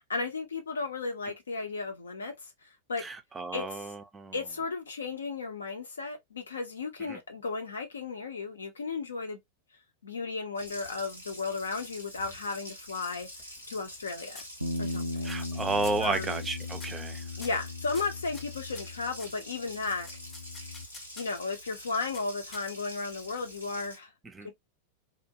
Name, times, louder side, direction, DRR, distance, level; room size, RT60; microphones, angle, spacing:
voice 1, 0.0-2.3 2.9-3.0 3.5-3.9 4.3-9.4 10.0-13.3 13.7-14.4 14.8-15.3 16.0-16.5 17.4-20.1 21.2-24.1 24.4-24.5, left 4 dB, 70° left, 0.6 m, -34 dB
voice 2, 3.0-4.3 7.1-7.2 15.2-17.2 24.3-24.5, right 3 dB, 15° right, 0.4 m, -32 dB
Water tap faucet, 10.6-24.0, equal, 85° left, 1.1 m, -47 dB
sound 1, 13.4-14.0 14.3-14.9 15.3-15.6 15.8-16.1 16.7-17.1 17.4-19.4 20.0-21.4 22.1-23.0, left 3 dB, 25° left, 0.7 m, -48 dB
Bass guitar, 14.6-19.4 19.7-20.9, left 2 dB, 85° right, 0.3 m, -38 dB
2.4 x 2.1 x 2.7 m
figure-of-eight pair, 90°, 0 cm